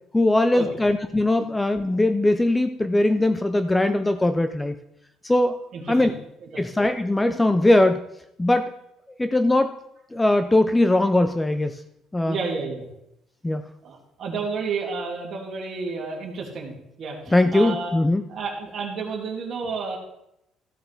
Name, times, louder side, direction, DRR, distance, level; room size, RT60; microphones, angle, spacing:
voice 1, 0.1-4.8 5.2-5.6 5.9-6.1 6.6-8.0 8.4-8.7 9.2-9.8 10.1-11.8 12.1-12.4 13.4-13.6 17.3-18.2, left 1 dB, 10° left, 9 dB, 0.4 m, -20 dB
voice 2, 5.7-6.1 6.5-6.6 12.2-12.8 13.8-16.7 17.0-17.9 18.3-20.0, right 4 dB, 40° right, -1 dB, 2.5 m, -31 dB
14.0 x 7.7 x 3.4 m, 0.80 s
cardioid pair, 165°, 0 cm